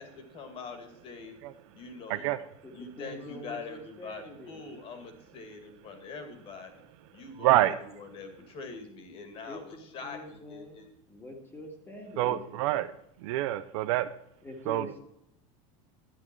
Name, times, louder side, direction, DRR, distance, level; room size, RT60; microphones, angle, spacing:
voice 1, 0.0-1.4 1.7-2.3 2.7-6.7 7.1-10.9, left 4 dB, 30° left, 7 dB, 2.3 m, -44 dB
voice 2, 2.6-4.7 9.4-10.8 11.1-12.6 14.4-15.0, left 1 dB, 10° left, 4 dB, 2.0 m, -45 dB
voice 3, 7.4-7.7 12.2-12.9 13.2-14.1 14.7-14.9, right 15 dB, 60° right, 11 dB, 0.6 m, -26 dB
12.0 x 9.9 x 4.5 m, 0.76 s
supercardioid pair, 165°, 18 cm